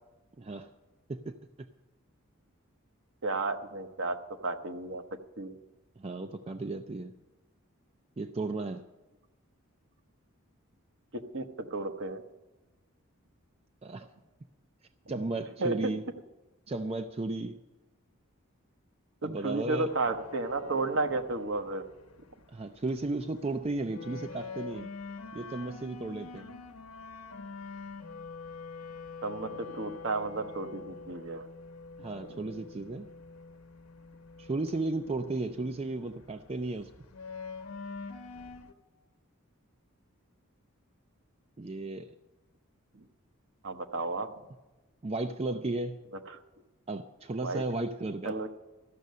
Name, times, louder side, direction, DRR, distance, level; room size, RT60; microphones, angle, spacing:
voice 1, 0.4-0.7 1.1-1.3 6.0-7.1 8.2-8.8 13.8-14.1 15.1-16.0 16.7-17.6 19.2-19.9 22.5-24.9 25.3-26.5 32.0-33.1 34.4-36.9 41.6-42.1 45.0-46.0 46.9-48.4, right 2 dB, 30° right, 8 dB, 0.4 m, -34 dB
voice 2, 3.2-4.2 4.4-5.0 5.4-5.6 11.3-12.2 15.1-15.2 15.6-15.9 19.4-21.8 29.2-31.4 32.2-32.4 43.6-44.3 46.3-46.4 47.4-47.6 48.2-48.5, right 3 dB, 60° right, 6 dB, 1.0 m, -32 dB
sound 1, 19.9-38.7, left 4 dB, 85° left, 1.0 m, -46 dB
13.5 x 6.5 x 9.3 m, 1.1 s
head